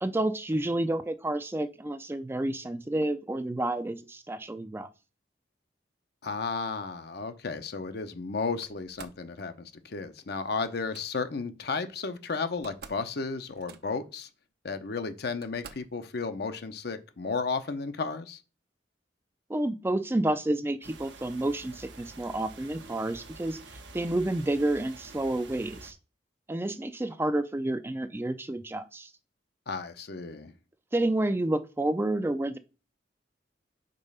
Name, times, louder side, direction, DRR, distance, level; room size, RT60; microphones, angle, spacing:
voice 1, 0.0-4.9 19.5-23.6 23.9-26.0 26.5-29.1 30.9-32.6, right 1 dB, 15° right, 0.4 m, -29 dB
voice 2, 6.2-14.3 14.6-18.4 29.7-30.5, left 4 dB, 60° left, 0.7 m, -33 dB
Slam, 8.6-9.3 10.6-11.1 12.2-12.3 12.5-13.1 13.4-14.1 14.8-14.9 15.4-16.0, right 6 dB, 60° right, 0.6 m, -49 dB
sound 1, 20.8-25.9, right 3 dB, 80° right, 1.0 m, -48 dB
5.3 x 4.0 x 5.4 m
head